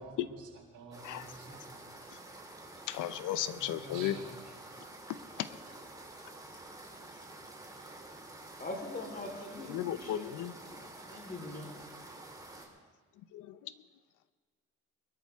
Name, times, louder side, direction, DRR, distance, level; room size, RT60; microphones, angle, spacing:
voice 1, 0.0-1.8 3.5-4.6, right 3 dB, 75° right, -2 dB, 3.8 m, -49 dB
sound 1, 0.9-12.7, right 2 dB, 10° right, 3.1 m, -49 dB
voice 2, 2.9-4.2 5.4-5.5 9.7-10.5 13.3-13.7, left 12 dB, 85° left, 14 dB, 0.7 m, -34 dB
voice 3, 8.6-11.7, left 2 dB, 30° left, 1 dB, 4.0 m, -43 dB
23.0 x 13.0 x 3.6 m, 1.5 s
cardioid pair, 90°, 30 cm